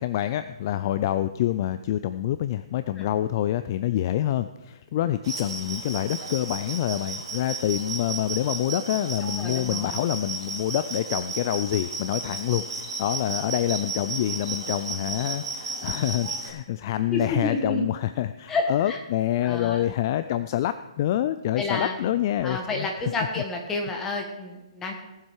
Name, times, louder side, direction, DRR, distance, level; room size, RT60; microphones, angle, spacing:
voice 1, 0.0-22.9, left 12 dB, 35° left, 12 dB, 0.4 m, -27 dB
sound 1, 5.2-16.5, right 3 dB, 50° right, 3.9 m, -34 dB
voice 2, 9.2-10.0 17.1-17.8 18.5-19.0 19.4-19.9 21.6-21.9 22.4-24.9, left 2 dB, 10° left, 2 dB, 1.5 m, -30 dB
18.0 x 7.5 x 4.8 m, 1.0 s
hypercardioid pair, 160°, 3 cm